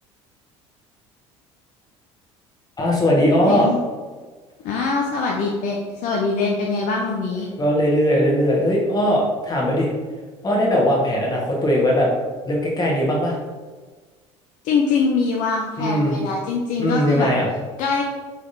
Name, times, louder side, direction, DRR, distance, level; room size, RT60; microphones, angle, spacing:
voice 1, 2.8-3.7 7.6-9.9 10.4-12.1 12.4-13.4 15.8-16.2 16.8-17.5, equal, 25° left, -2 dB, 1.3 m, -19 dB
voice 2, 3.5-3.8 4.6-7.5 14.6-17.3 17.8-18.1, left 4 dB, 55° left, 0 dB, 0.5 m, -23 dB
3.8 x 3.4 x 2.6 m, 1.4 s
hypercardioid pair, 60°, 16 cm